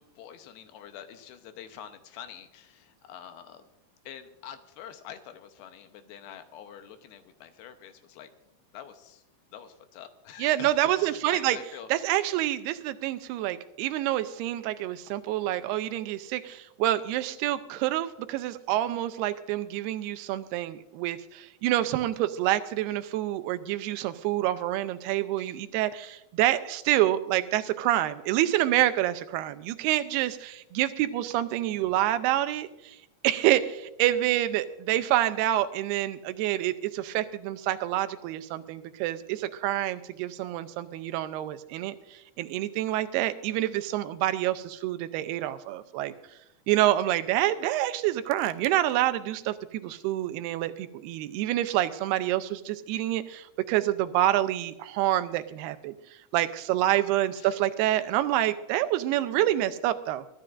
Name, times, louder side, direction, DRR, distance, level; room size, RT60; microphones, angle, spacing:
voice 1, 0.0-3.6 4.1-8.3 8.7-9.2 9.5-10.7 11.0-11.9 25.4-25.5 57.4-57.5, left 9 dB, 80° left, 8 dB, 2.7 m, -46 dB
voice 2, 10.4-11.6 11.9-33.0 33.2-46.1 46.7-55.9 56.3-60.2, right 14 dB, 85° right, 11 dB, 2.7 m, -27 dB
23.5 x 12.5 x 2.5 m, 0.87 s
omnidirectional pair, 4.6 m